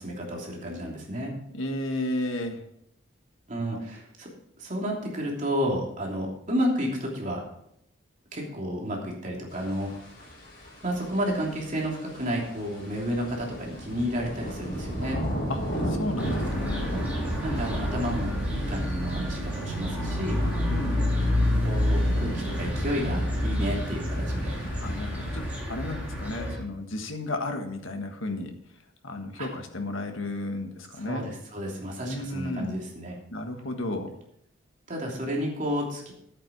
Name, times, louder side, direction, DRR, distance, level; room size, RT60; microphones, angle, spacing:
voice 1, 0.0-1.3 3.5-4.3 4.6-7.4 8.3-9.9 10.8-15.2 16.9-17.0 17.4-20.4 21.6-24.5 29.4-29.5 31.0-33.2 34.9-36.1, equal, 40° right, -1 dB, 3.0 m, -31 dB
voice 2, 1.5-2.6 15.5-16.9 20.6-21.0 24.8-28.5 29.0-31.3 32.0-32.8 33.3-34.1, left 2 dB, 85° left, 5 dB, 1.6 m, -33 dB
sound 1, 9.5-25.6, equal, 50° left, 4.9 m, -36 dB
sound 2, 16.2-26.6, left 1 dB, 10° right, 3.8 m, -28 dB
11.5 x 8.7 x 4.7 m, 0.75 s
head